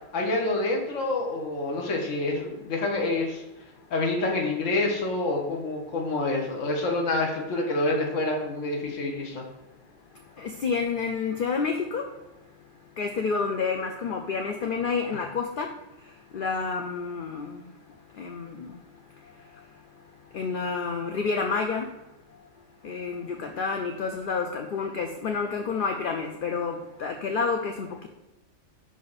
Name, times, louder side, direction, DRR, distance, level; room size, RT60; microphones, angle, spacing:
voice 1, 0.1-3.4 3.9-9.4 15.1-15.2, left 2 dB, 75° left, 0 dB, 1.5 m, -27 dB
voice 2, 10.4-12.0 13.0-15.7 16.3-17.6 18.2-18.7 20.3-21.9 22.8-28.1, left 5 dB, 55° left, 4 dB, 0.6 m, -29 dB
5.8 x 5.2 x 4.1 m, 0.98 s
omnidirectional pair, 1.3 m